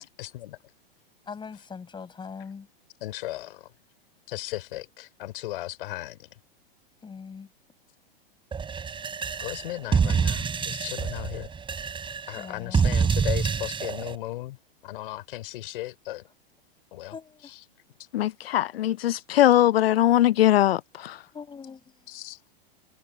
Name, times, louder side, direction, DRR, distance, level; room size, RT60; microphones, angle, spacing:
voice 1, 0.2-0.6 3.0-3.7 4.3-6.2 9.4-11.5 12.3-14.6 14.8-16.2 16.9-17.1 22.1-22.4, left 16 dB, 65° left, 5.2 m, -36 dB
voice 2, 1.3-2.7 7.0-7.5 12.4-12.9 17.1-17.5 21.3-21.8, left 5 dB, 15° left, 7.2 m, -41 dB
sound 1, 8.5-14.1, right 6 dB, 15° right, 7.1 m, -27 dB
voice 3, 18.1-21.2, left 13 dB, 85° left, 0.6 m, -21 dB
hypercardioid pair, 125°, 29 cm